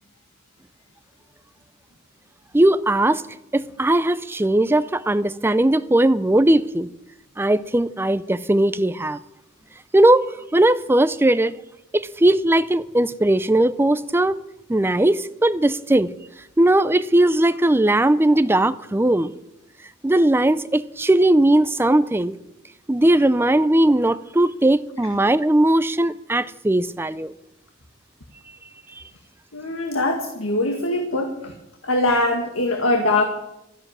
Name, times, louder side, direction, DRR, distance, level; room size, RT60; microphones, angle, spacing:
voice 1, 2.5-3.2 3.5-6.9 7.4-9.2 9.9-10.2 10.5-11.5 11.9-14.4 14.7-16.1 16.6-19.3 20.0-22.4 22.9-27.3, right 1 dB, 10° right, 0.4 m, -18 dB
voice 2, 29.5-31.5 31.8-33.2, left 2 dB, 85° left, 1.9 m, -22 dB
14.0 x 10.5 x 7.4 m
head